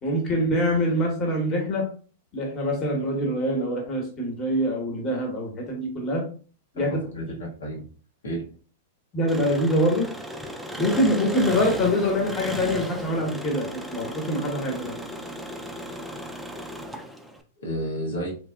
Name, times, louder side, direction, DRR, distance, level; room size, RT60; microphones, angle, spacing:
voice 1, 0.0-1.9 2.3-6.2 6.7-7.0 9.1-10.1 10.8-14.9, equal, 30° left, 0 dB, 1.0 m, -24 dB
voice 2, 6.8-7.8 8.2-8.4 17.6-18.3, equal, 80° left, -3 dB, 0.7 m, -31 dB
Engine, 9.3-17.4, equal, 5° right, 0.3 m, -35 dB
2.8 x 2.0 x 2.2 m, 0.40 s
hypercardioid pair, 110°, 0 cm